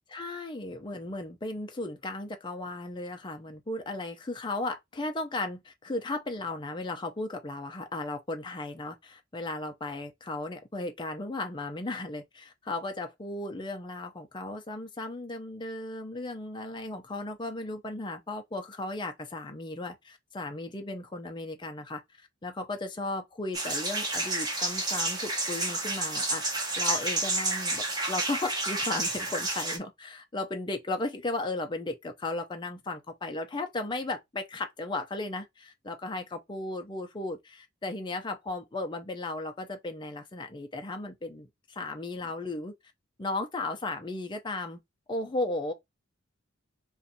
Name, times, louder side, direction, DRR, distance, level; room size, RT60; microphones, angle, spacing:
voice 1, 0.1-22.0 22.4-26.4 26.8-42.7 43.2-44.8 45.1-45.7, left 2 dB, 25° left, 0.5 m, -35 dB
sound 1, 23.5-29.8, right 2 dB, 20° right, 0.9 m, -30 dB
2.6 x 2.4 x 4.1 m
head